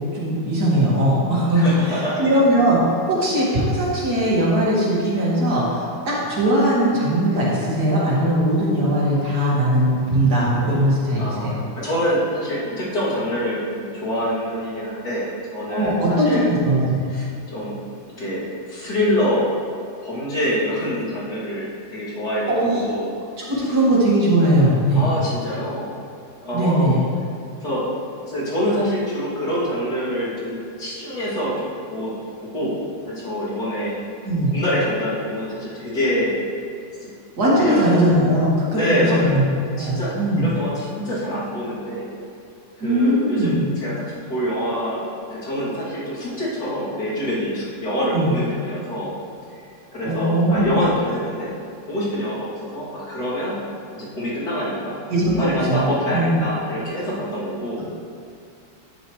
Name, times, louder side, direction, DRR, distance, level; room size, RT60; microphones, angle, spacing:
voice 1, 0.0-2.8 3.1-11.5 15.7-16.9 22.5-22.8 23.4-25.1 26.5-27.0 34.2-34.5 37.4-39.4 39.7-40.5 42.8-43.7 48.1-48.3 50.1-50.8 55.1-55.8 56.1-56.4, right 1 dB, 55° right, -7 dB, 2.6 m, -19 dB
voice 2, 1.5-2.3 11.2-16.4 17.1-17.8 18.2-19.5 20.0-23.1 23.6-23.7 24.9-25.9 26.4-27.0 27.6-31.7 31.9-32.1 32.4-32.8 33.1-33.9 34.5-36.3 37.0-37.1 37.5-37.9 38.7-39.4 39.8-42.1 42.8-43.9 44.3-45.0 45.3-49.1 49.6-51.6 51.9-53.6 53.9-55.0 55.3-57.8, equal, 55° left, -9 dB, 3.3 m, -25 dB
10.5 x 9.2 x 3.2 m, 2.3 s
omnidirectional pair, 2.0 m